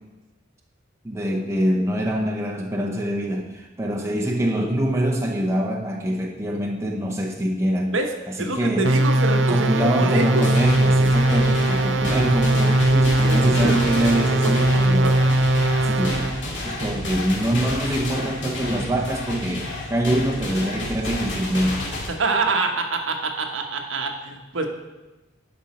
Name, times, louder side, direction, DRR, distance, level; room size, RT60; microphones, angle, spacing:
voice 1, 1.0-8.0 8.3-9.0 9.4-15.2 15.8-21.9, right 1 dB, 15° right, -1 dB, 0.8 m, -24 dB
voice 2, 8.4-10.4 13.2-13.8 15.0-15.1 22.1-24.7, right 3 dB, 80° right, 4 dB, 1.1 m, -25 dB
sound 1, 8.8-16.4, right 1 dB, 65° right, 0.6 m, -20 dB
sound 2, 10.3-22.1, left 1 dB, 65° left, 2.1 m, -31 dB
11.5 x 5.4 x 4.3 m, 1.1 s
head